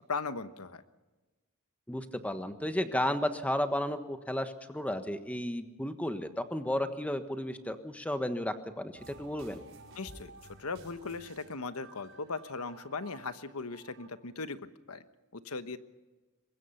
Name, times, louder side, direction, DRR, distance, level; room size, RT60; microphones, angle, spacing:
voice 1, 0.1-0.8 10.0-10.3 10.6-14.6 14.9-15.0 15.3-15.8, left 4 dB, 75° left, 11 dB, 1.2 m, -38 dB
voice 2, 1.9-9.6, left 1 dB, 5° left, 8 dB, 1.4 m, -33 dB
sound 1, 8.9-14.1, right 2 dB, 60° right, 5.2 m, -53 dB
23.5 x 21.0 x 5.8 m, 1.2 s
head